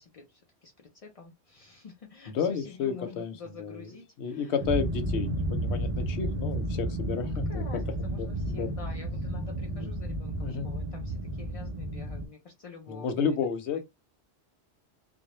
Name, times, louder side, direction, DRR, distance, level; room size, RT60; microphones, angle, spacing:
voice 1, 0.0-4.5 7.1-13.2 13.7-13.8, left 4 dB, 65° left, 0.3 m, -48 dB
voice 2, 2.3-7.6 8.2-8.7 9.7-9.8 10.4-10.7 12.9-13.8, left 6 dB, 80° left, 0.9 m, -32 dB
sound 1, 4.6-12.3, right 1 dB, 60° right, 0.3 m, -32 dB
2.1 x 2.0 x 2.9 m
omnidirectional pair, 1.1 m